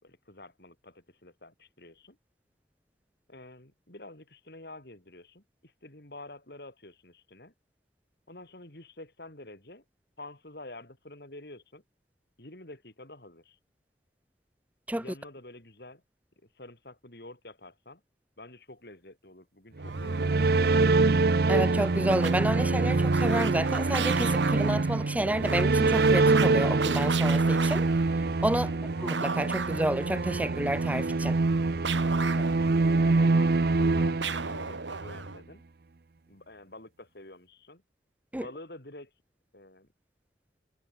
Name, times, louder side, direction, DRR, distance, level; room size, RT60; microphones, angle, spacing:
voice 1, 0.0-2.2 3.3-7.5 8.3-9.8 10.2-11.8 12.4-13.6 15.0-16.0 16.4-18.0 18.4-20.9 28.5-28.8 32.2-32.5 32.9-35.6 36.3-37.8 38.4-39.1 39.5-39.9, left 2 dB, 60° left, 3.9 m, -48 dB
sound 1, 19.8-35.0, right 3 dB, 55° right, 0.6 m, -25 dB
sound 2, 19.8-35.4, right 4 dB, 85° right, 2.6 m, -37 dB
voice 2, 21.5-27.9 28.4-28.7 29.0-31.4 38.3-38.4, right 1 dB, 10° right, 0.5 m, -30 dB
head